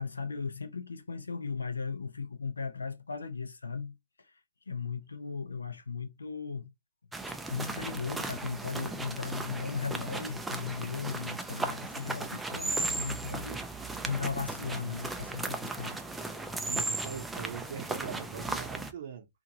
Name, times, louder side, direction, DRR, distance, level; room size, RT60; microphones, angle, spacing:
voice 1, 0.0-4.4 4.7-6.7 7.5-16.0, left 5 dB, 85° left, 0.6 m, -37 dB
sound 1, 7.1-18.9, right 2 dB, 5° right, 0.3 m, -36 dB
voice 2, 16.6-19.3, right 7 dB, 55° right, 0.6 m, -41 dB
2.7 x 2.5 x 2.6 m
hypercardioid pair, 125°, 0 cm